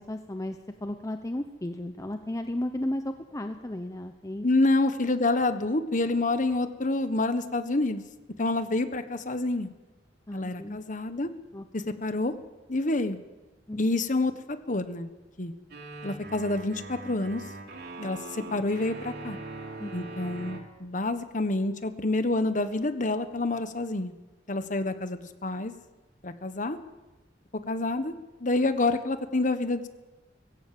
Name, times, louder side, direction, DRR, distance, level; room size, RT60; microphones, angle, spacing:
voice 1, 0.0-4.4 10.3-10.8 11.5-11.6 13.7-13.8 19.8-19.9, left 1 dB, 20° left, 7 dB, 0.9 m, -34 dB
voice 2, 4.4-8.0 8.4-9.7 10.3-11.3 11.7-12.3 12.7-13.2 13.8-15.1 15.4-15.5 16.0-17.4 18.0-19.4 19.9-24.1 24.5-25.7 26.2-26.8 27.7-28.1 28.4-29.9, left 2 dB, 45° left, 10 dB, 1.4 m, -28 dB
sound 1, 15.7-20.6, right 2 dB, 65° right, 3.1 m, -41 dB
20.0 x 16.5 x 7.8 m, 1.1 s
head